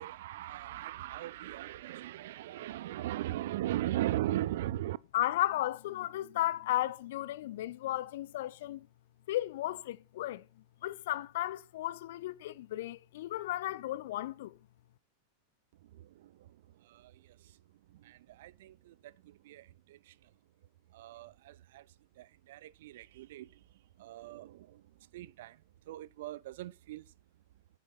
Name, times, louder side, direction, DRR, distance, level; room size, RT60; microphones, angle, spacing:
voice 1, 0.0-5.0 18.1-18.9 19.5-19.6 20.9-21.8 22.2-23.5 24.0-24.7 25.1-25.5 25.9-27.0, right 14 dB, 55° right, 0.5 m, -38 dB
voice 2, 5.1-8.9 9.3-10.4 10.8-14.6, left 14 dB, 55° left, 0.5 m, -34 dB
9.9 x 8.8 x 5.8 m
figure-of-eight pair, 90°, 0 cm